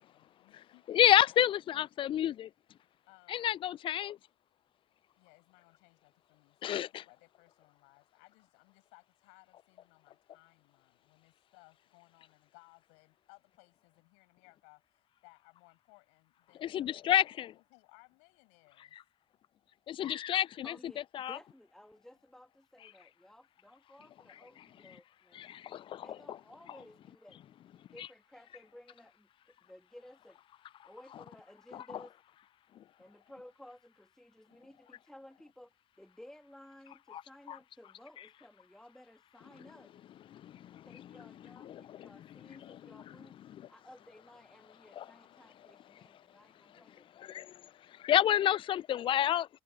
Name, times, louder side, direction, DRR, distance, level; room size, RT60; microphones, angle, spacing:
voice 1, 0.0-1.0 1.3-1.9 3.1-3.7 5.2-19.0, left 35 dB, 70° left, 5.8 m, -63 dB
voice 2, 0.9-2.5 3.3-4.2 6.6-6.9 16.6-17.5 19.9-20.7 21.1-21.4 25.3-26.1 31.7-31.8 37.1-37.2 37.5-37.6 40.4-41.0 41.6-42.1 42.5-42.8 45.0-45.1 47.2-47.5 48.0-49.5, left 11 dB, 45° left, 0.5 m, -29 dB
voice 3, 20.6-25.5 26.0-27.4 27.8-30.4 30.8-32.3 33.0-39.9 40.8-43.4 43.7-47.2, left 1 dB, 5° left, 1.8 m, -56 dB
figure-of-eight pair, 50°, 12 cm